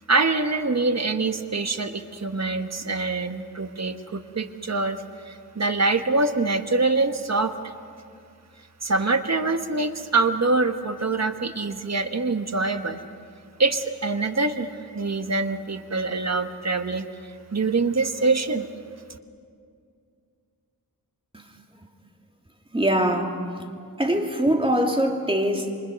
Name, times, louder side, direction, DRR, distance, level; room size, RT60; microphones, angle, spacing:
voice 1, 0.1-7.5 8.8-13.0 13.6-14.7 14.9-17.1 17.5-18.7, right 3 dB, 45° right, 8 dB, 1.3 m, -24 dB
voice 2, 22.7-23.4 24.0-25.7, right 1 dB, 15° right, 2 dB, 2.7 m, -22 dB
28.5 x 25.5 x 5.3 m, 2.3 s
wide cardioid pair, 70°, 36 cm